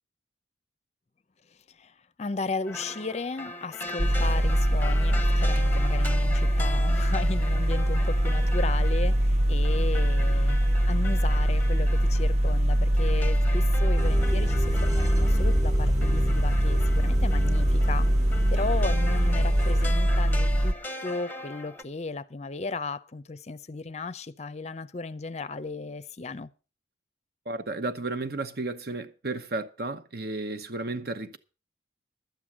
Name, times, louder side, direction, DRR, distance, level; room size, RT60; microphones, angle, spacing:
voice 1, 1.7-10.6 10.9-18.1 18.5-20.7 21.0-26.5, left 3 dB, 35° left, 0.5 m, -35 dB
sound 1, 2.7-21.8, left 2 dB, 10° left, 0.8 m, -40 dB
sound 2, 4.0-20.7, equal, 35° right, 0.6 m, -23 dB
sound 3, 14.0-19.9, equal, 20° right, 1.4 m, -33 dB
voice 2, 27.5-31.4, right 2 dB, 55° right, 1.0 m, -33 dB
12.0 x 8.8 x 6.2 m
head